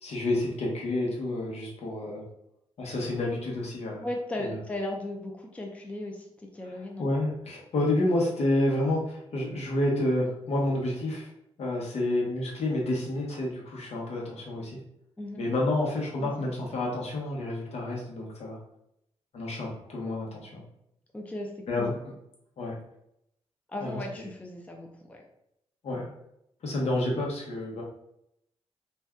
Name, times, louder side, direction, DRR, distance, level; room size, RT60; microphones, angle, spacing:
voice 1, 0.0-2.2 2.8-4.1 4.4-4.6 7.0-11.3 11.6-14.8 15.4-18.6 19.3-20.6 21.7-21.9 22.6-22.8 23.8-24.0 25.8-26.1 26.6-27.8, left 1 dB, 70° left, -3 dB, 1.0 m, -29 dB
voice 2, 4.0-6.3 6.5-7.1 15.2-15.4 16.2-16.3 21.1-21.5 21.8-21.9 23.7-25.2, left 1 dB, 10° left, 1 dB, 0.5 m, -36 dB
2.6 x 2.2 x 3.5 m, 0.79 s
cardioid pair, 85°, 11 cm